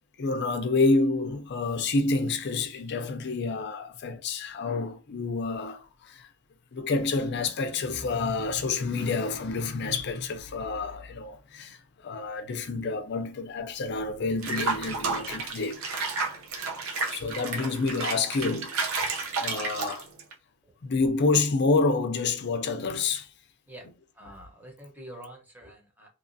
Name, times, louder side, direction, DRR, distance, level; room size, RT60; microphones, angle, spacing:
voice 1, 0.2-6.3 6.7-15.8 17.1-20.1 20.8-23.3 24.3-24.4, left 3 dB, 55° left, 0.5 m, -28 dB
Water / Bathtub (filling or washing), 14.4-20.3, right 4 dB, 90° right, 0.6 m, -31 dB
voice 2, 24.2-26.1, right 1 dB, 10° right, 0.8 m, -46 dB
2.9 x 2.4 x 2.6 m
head